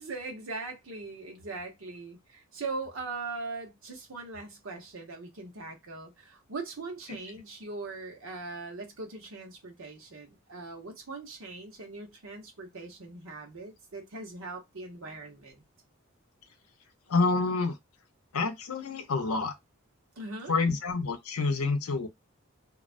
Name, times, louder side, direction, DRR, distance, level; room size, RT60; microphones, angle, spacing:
voice 1, 0.0-15.6 20.2-20.6, right 3 dB, 70° right, 0.8 m, -40 dB
voice 2, 17.1-17.8 18.3-19.5 20.5-22.1, left 3 dB, 90° left, 0.6 m, -28 dB
2.3 x 2.2 x 2.4 m
head